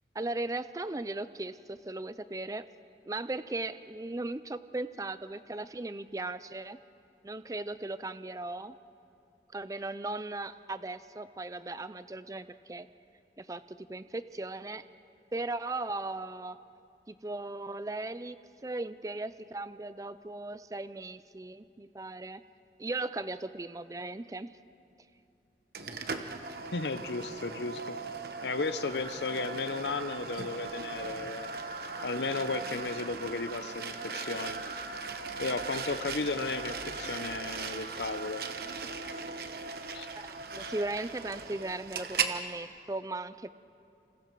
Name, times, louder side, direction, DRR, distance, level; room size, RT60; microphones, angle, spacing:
voice 1, 0.1-2.6 3.1-6.8 7.2-8.7 9.5-12.9 13.4-14.9 15.3-16.6 17.1-18.4 18.6-22.4 22.8-24.6 40.2-43.5, right 2 dB, 20° right, 13 dB, 0.4 m, -37 dB
sound 1, 25.7-42.4, right 4 dB, 60° right, 1.1 m, -38 dB
voice 2, 26.7-28.0 28.4-31.5 32.0-34.6 35.4-38.4 39.9-40.1, left 3 dB, 80° left, 11 dB, 0.8 m, -34 dB
28.0 x 27.0 x 4.7 m, 2.6 s
head